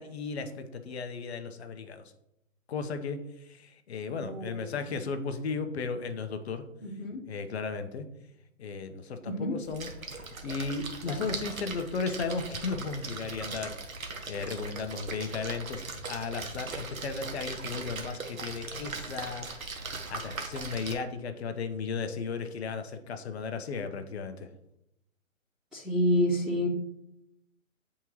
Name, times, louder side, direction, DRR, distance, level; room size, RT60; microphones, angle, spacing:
voice 1, 0.0-2.0 2.7-6.6 7.3-8.1 8.6-13.7 14.3-19.5 19.8-24.5, left 4 dB, 50° left, 8 dB, 0.8 m, -35 dB
voice 2, 4.1-4.7 6.8-7.2 9.2-9.5 11.1-11.4 25.7-26.7, equal, ahead, -14 dB, 0.4 m, -29 dB
Splash splatter, 9.6-20.9, right 3 dB, 85° right, 1.2 m, -39 dB
8.7 x 3.6 x 3.0 m, 0.82 s
hypercardioid pair, 145°, 40 cm